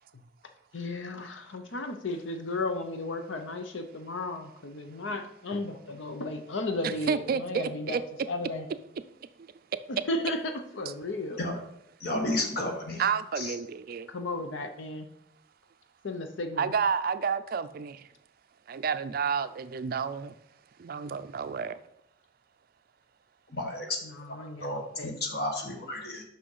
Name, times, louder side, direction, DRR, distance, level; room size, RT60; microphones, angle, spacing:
voice 1, 0.7-8.0 8.3-8.7 9.9-11.4 14.1-15.1 16.0-16.7 21.1-21.2 24.0-25.1, left 2 dB, 70° left, 6 dB, 0.7 m, -34 dB
voice 2, 7.1-8.0 13.0-14.1 16.6-18.1 18.7-20.4 20.8-21.8, right 6 dB, 50° right, 12 dB, 0.4 m, -30 dB
voice 3, 12.0-13.0 13.4-13.5 23.5-26.2, left 1 dB, 55° left, 1 dB, 1.7 m, -32 dB
6.2 x 5.8 x 5.5 m, 0.77 s
head